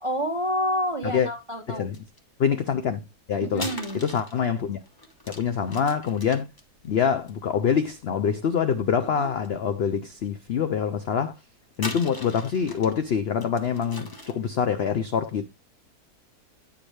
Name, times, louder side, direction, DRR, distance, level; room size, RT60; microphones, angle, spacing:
voice 1, 0.0-1.9 3.4-4.0, equal, 40° right, 0.4 m, -28 dB
sound 1, 1.9-2.2 3.5-8.3 8.9-9.5 9.9-10.0 11.7-13.0 13.4-14.5, left 1 dB, 20° left, 0.7 m, -40 dB
voice 2, 2.4-3.7 3.9-4.8 5.3-6.5 6.8-11.3 11.8-15.5, left 7 dB, 75° left, 0.5 m, -25 dB
8.8 x 4.8 x 3.1 m
omnidirectional pair, 1.7 m